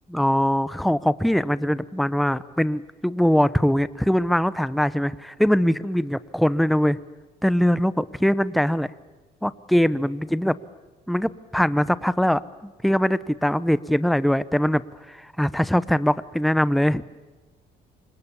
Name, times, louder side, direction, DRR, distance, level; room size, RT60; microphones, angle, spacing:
voice 1, 0.1-7.0 7.4-8.9 9.4-10.6 11.1-14.8 15.1-17.0, equal, ahead, 16 dB, 0.8 m, -22 dB
28.5 x 25.5 x 7.2 m, 1.2 s
cardioid pair, 110°, 17 cm